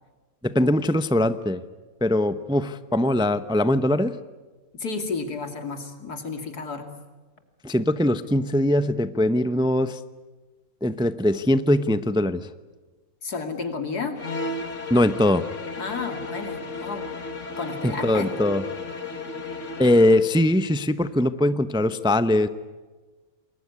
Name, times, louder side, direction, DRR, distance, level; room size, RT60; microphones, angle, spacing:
voice 1, 0.4-1.6 2.0-4.2 7.6-10.0 10.8-12.4 14.9-15.4 17.8-18.6 19.8-22.5, left 1 dB, 5° right, 12 dB, 0.5 m, -21 dB
voice 2, 4.7-6.9 13.2-14.2 15.8-17.1 17.6-18.3, left 4 dB, 90° left, 6 dB, 3.2 m, -32 dB
sound 1, 14.2-20.3, left 3 dB, 50° left, 2.3 m, -34 dB
28.5 x 21.5 x 9.6 m, 1.3 s
omnidirectional pair, 1.6 m